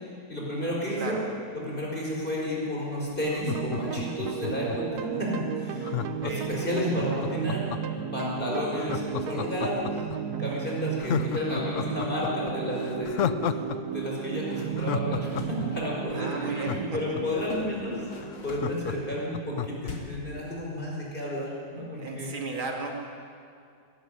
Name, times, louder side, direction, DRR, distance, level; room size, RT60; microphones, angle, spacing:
voice 1, 0.3-1.2 1.5-5.9 6.2-10.0 10.4-13.6 13.9-18.0 18.4-22.3, left 1 dB, 25° left, -4 dB, 5.4 m, -32 dB
Laughter, 3.3-5.0 5.8-8.0 8.8-10.2 10.5-10.6 11.0-13.8 14.0-14.1 14.5-17.4 17.9-18.0 18.2-19.9 20.3-20.4, left 10 dB, 80° left, 0.6 m, -32 dB
sound 1, 3.5-20.4, right 8 dB, 60° right, 1.2 m, -35 dB
voice 2, 6.0-6.5 16.1-17.0 22.0-22.9, right 3 dB, 85° right, 0 dB, 3.4 m, -35 dB
sound 2, 15.3-15.7 17.4-18.9 19.8-20.3, left 3 dB, 45° left, 2.2 m, -42 dB
21.0 x 13.5 x 9.7 m, 2.4 s
omnidirectional pair, 2.2 m